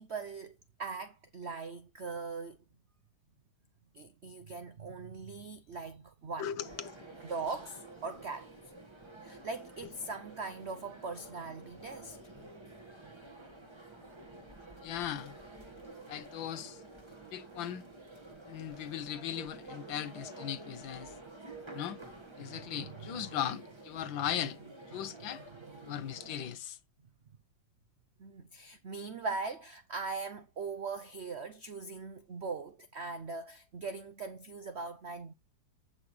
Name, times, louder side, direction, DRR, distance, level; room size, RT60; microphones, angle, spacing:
voice 1, 0.0-2.6 3.9-6.5 7.3-8.5 9.2-12.2 22.5-23.2 28.2-35.3, right 4 dB, 70° right, 0.6 m, -40 dB
voice 2, 6.4-6.9 14.8-15.4 16.1-16.8 17.3-17.8 18.5-21.1 21.7-22.0 22.4-24.6 24.9-25.4 25.9-26.8, left 10 dB, 75° left, 1.6 m, -38 dB
sound 1, 6.6-26.5, right 2 dB, 15° right, 1.6 m, -50 dB
15.5 x 5.8 x 3.2 m
omnidirectional pair, 2.1 m